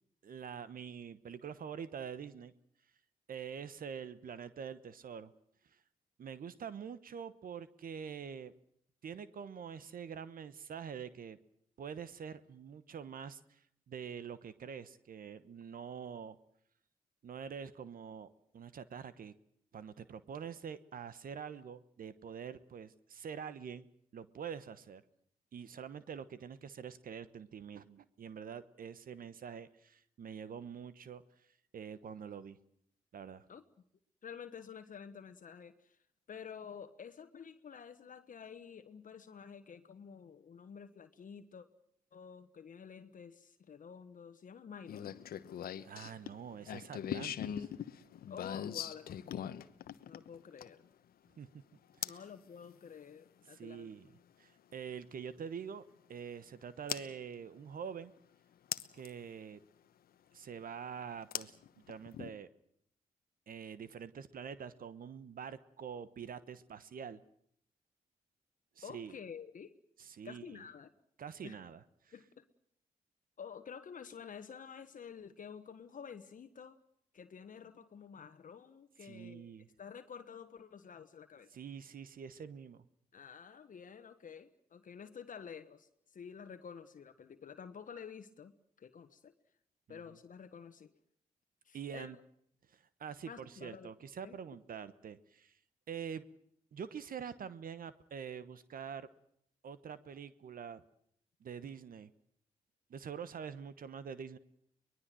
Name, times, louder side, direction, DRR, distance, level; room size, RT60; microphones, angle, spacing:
voice 1, 0.2-2.5 3.3-5.3 5.7-5.8 6.2-8.5 9.0-11.4 11.8-16.4 17.2-18.3 18.5-19.3 19.7-23.9 24.1-25.0 25.5-31.2 31.7-32.6 33.1-33.5 45.8-47.7 51.4-51.5 52.0-52.2 53.5-54.1 54.4-55.8 56.1-58.1 58.9-59.6 60.3-61.6 61.9-62.5 63.5-67.2 68.8-69.2 70.0-70.6 71.2-72.1 79.0-79.7 81.5-82.8 89.9-90.0 91.7-92.2 92.7-95.6 95.9-96.2 96.7-99.1 99.6-100.8 101.4-102.1 102.9-104.4, right 7 dB, 65° right, 15 dB, 1.1 m, -45 dB
voice 2, 34.2-36.0 36.3-41.7 42.1-45.2 48.3-49.6 50.1-50.9 52.0-53.9 68.8-69.7 70.2-70.9 71.4-71.6 72.1-72.4 73.4-76.8 77.1-79.5 79.8-81.6 83.1-89.3 89.9-90.9 91.6-92.1 93.2-93.9 94.2-94.4, left 7 dB, 60° left, 9 dB, 1.3 m, -50 dB
sound 1, 44.9-50.9 52.0-52.3 54.2-54.3 56.9-57.1 58.7-59.1 61.3-62.3, left 10 dB, 80° left, 1.0 m, -40 dB
23.5 x 20.5 x 7.7 m, 0.69 s
supercardioid pair, 50°, 15 cm